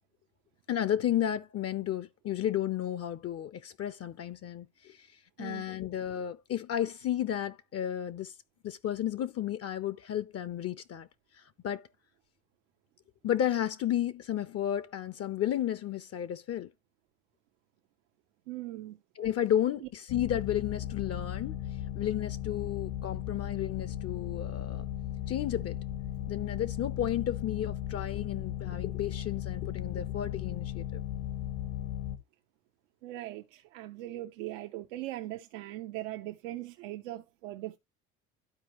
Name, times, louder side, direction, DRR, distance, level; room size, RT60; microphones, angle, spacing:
voice 1, 0.7-5.1 5.4-8.3 8.6-11.1 11.6-11.9 13.2-16.7 19.2-21.6 21.9-24.8 25.3-25.8 26.3-31.0, left 11 dB, 40° left, 0.7 m, -32 dB
voice 2, 18.5-19.0 19.8-19.9 33.0-37.8, right 15 dB, 80° right, 0.8 m, -40 dB
sound 1, 20.1-32.2, left 11 dB, 65° left, 1.4 m, -36 dB
12.0 x 4.4 x 3.0 m
hypercardioid pair, 75°, 38 cm